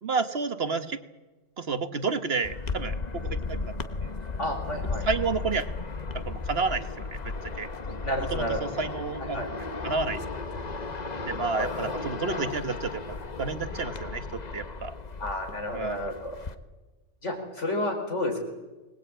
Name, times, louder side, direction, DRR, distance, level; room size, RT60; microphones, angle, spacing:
voice 1, 0.0-1.0 1.6-3.7 4.0-4.1 5.0-5.7 6.1-6.8 7.1-8.0 8.3-10.2 11.2-14.9 15.7-16.1, right 4 dB, 55° right, 10 dB, 1.4 m, -31 dB
sound 1, 2.4-16.5, left 3 dB, 35° left, 1.2 m, -35 dB
voice 2, 4.4-5.0 8.0-8.6 9.3-9.5 11.6-11.9 15.2-16.3 17.2-18.4, left 1 dB, 70° left, 3 dB, 5.2 m, -31 dB
24.0 x 20.0 x 8.9 m, 1.2 s
omnidirectional pair, 1.3 m